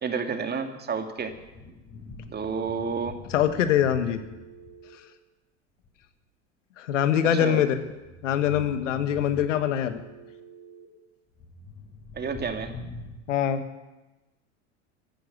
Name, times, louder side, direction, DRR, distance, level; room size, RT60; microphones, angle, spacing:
voice 1, 0.0-1.3 2.3-3.1 7.3-7.6 12.1-12.7, right 5 dB, 25° right, 6 dB, 2.0 m, -30 dB
sound 1, 1.0-4.8 5.8-6.1 7.4-10.0 11.3-13.2, left 3 dB, 35° left, 5.9 m, -44 dB
voice 2, 3.3-4.2 6.8-7.8 8.2-10.0 13.3-13.6, left 10 dB, 80° left, 10 dB, 1.5 m, -23 dB
Telephone, 4.0-5.0 6.9-7.9 9.9-10.9, right 7 dB, 50° right, 2.8 m, -49 dB
15.0 x 11.0 x 7.8 m, 1.1 s
hypercardioid pair, 85°, 37 cm